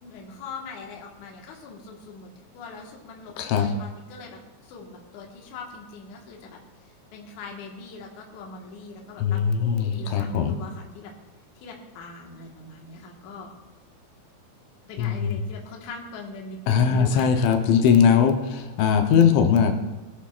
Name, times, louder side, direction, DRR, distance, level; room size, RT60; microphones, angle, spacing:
voice 1, 0.0-2.3 2.5-6.6 7.1-11.1 11.6-13.5 14.9-17.4, left 4 dB, 60° left, 0 dB, 2.3 m, -41 dB
voice 2, 3.4-3.7 9.2-10.6 15.0-15.4 16.7-19.7, left 7 dB, 85° left, 4 dB, 3.4 m, -20 dB
20.0 x 11.0 x 2.5 m, 1.1 s
omnidirectional pair, 5.3 m